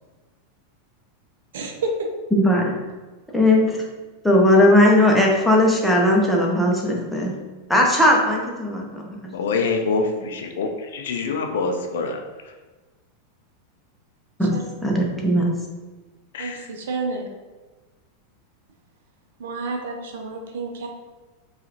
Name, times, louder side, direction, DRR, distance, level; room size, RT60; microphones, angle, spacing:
voice 1, 1.5-2.1 9.9-10.2 14.4-14.6 16.4-17.3 19.4-20.9, right 3 dB, 65° right, 3 dB, 0.6 m, -30 dB
voice 2, 2.3-2.7 3.3-3.8 4.2-7.3 7.7-9.3 14.4-14.5 14.8-15.5, left 1 dB, 5° left, -2 dB, 0.9 m, -18 dB
voice 3, 9.3-12.2 16.3-16.7, left 4 dB, 65° left, 4 dB, 0.4 m, -25 dB
4.6 x 2.5 x 3.0 m, 1.2 s
figure-of-eight pair, 90°, 0 cm